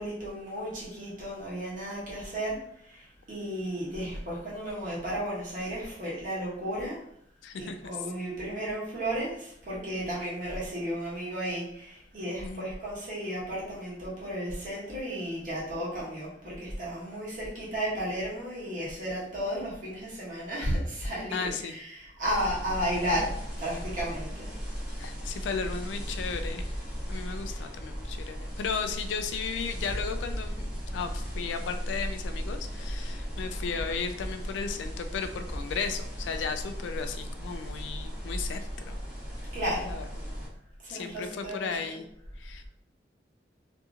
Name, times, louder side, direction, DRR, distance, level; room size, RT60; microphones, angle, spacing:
voice 1, 0.0-7.0 7.5-24.5 39.5-39.9 40.8-42.0, equal, 45° right, -7 dB, 1.1 m, -34 dB
voice 2, 7.4-7.8 12.4-12.7 21.3-21.7 25.0-26.7 27.1-39.0 39.8-40.3 40.9-42.1 42.4-42.7, left 5 dB, 85° left, 8 dB, 0.3 m, -35 dB
sound 1, 22.2-40.5, equal, 5° right, 0.9 m, -36 dB
2.8 x 2.6 x 2.4 m, 0.74 s
head